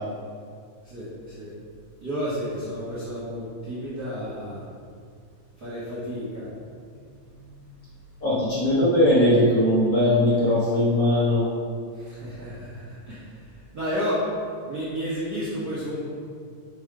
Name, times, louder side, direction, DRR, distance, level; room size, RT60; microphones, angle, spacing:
voice 1, 0.8-1.5 2.0-4.6 5.6-6.8 7.2-7.6 11.9-13.5 13.7-14.2 14.7-16.0, equal, 45° right, -11 dB, 1.2 m, -32 dB
voice 2, 8.2-11.4, left 1 dB, 65° left, -9 dB, 1.0 m, -20 dB
5.4 x 5.0 x 4.9 m, 2.2 s
omnidirectional pair, 3.8 m